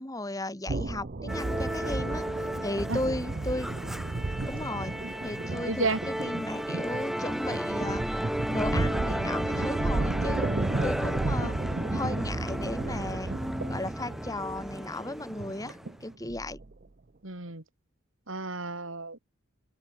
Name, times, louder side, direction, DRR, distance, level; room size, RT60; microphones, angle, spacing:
voice 1, 0.0-2.3 2.6-3.7 4.5-5.0 5.2-5.9 6.2-8.0 8.5-10.5 10.8-11.6 11.9-13.3 13.7-16.6, left 1 dB, 15° left, 2.3 m, -35 dB
sound 1, 0.7-16.8, right 2 dB, 45° right, 0.7 m, -33 dB
Musical instrument, 1.3-16.0, equal, ahead, 0.6 m, -34 dB
voice 2, 5.5-6.0 10.7-10.9 17.2-17.6 18.3-19.2, right 3 dB, 70° right, 3.6 m, -32 dB
open air
head